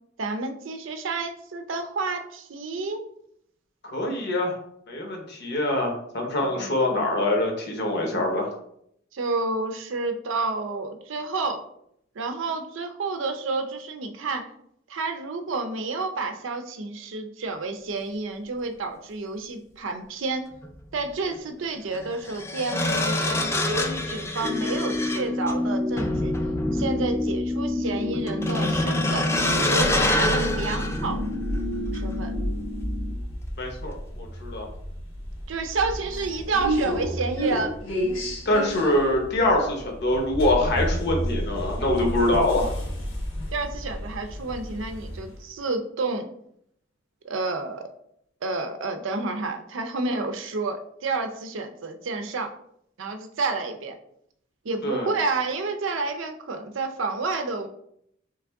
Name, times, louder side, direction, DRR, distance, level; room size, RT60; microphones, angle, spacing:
voice 1, 0.2-3.0 6.4-7.1 9.1-11.6 12.2-14.5 14.9-20.5 20.9-26.3 26.7-29.3 29.7-31.2 31.9-32.4 35.5-37.7 43.5-46.3 47.2-47.8 48.4-52.5 53.0-53.9 54.6-57.7, right 3 dB, 70° right, 7 dB, 0.5 m, -30 dB
voice 2, 3.8-4.6 4.9-8.5 33.6-34.7 38.4-42.7 54.8-55.1, left 1 dB, 55° left, 2 dB, 0.9 m, -24 dB
sound 1, 20.5-20.7 21.9-31.6 31.9-32.2, left 1 dB, 15° left, 0.3 m, -27 dB
sound 2, 24.4-33.1, left 2 dB, 30° right, 0.7 m, -30 dB
sound 3, 29.8-45.4, equal, 80° left, 1.1 m, -31 dB
3.6 x 3.2 x 3.4 m, 0.72 s
head